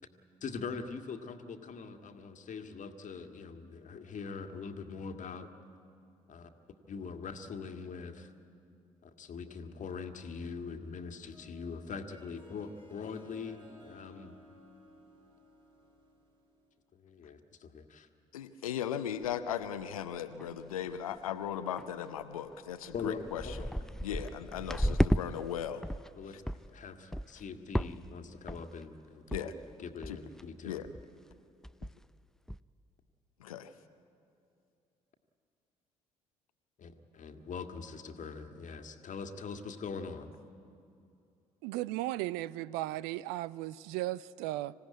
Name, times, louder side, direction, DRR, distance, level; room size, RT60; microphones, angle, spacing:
voice 1, 0.4-5.5 6.3-6.5 6.9-8.3 9.0-14.3 16.9-18.1 22.9-23.7 24.1-24.2 26.1-26.4 26.7-29.5 29.8-30.8 36.8-40.3, left 5 dB, 45° left, 6 dB, 1.8 m, -42 dB
Harp, 11.2-16.7, left 1 dB, 30° right, 5.4 m, -58 dB
voice 2, 18.3-23.6 24.0-25.8 29.3-29.5 30.1-30.2 30.6-30.9 33.4-33.7, left 9 dB, 80° left, 10 dB, 0.7 m, -37 dB
sound 1, 20.2-20.6 20.9-21.2 21.8-21.9 22.5-22.6 22.9-25.2 25.6-26.1 26.5-26.7 27.1-27.4 27.7-28.2 28.5-28.8 29.3-29.4 29.7-29.8 30.0-30.4 30.8-31.1 31.3-31.4 31.6-32.1 32.5-32.6, equal, 5° left, 0.5 m, -33 dB
voice 3, 41.6-44.7, right 16 dB, 65° right, 21 dB, 0.5 m, -36 dB
25.5 x 16.5 x 9.6 m, 2.6 s
figure-of-eight pair, 45°, 18 cm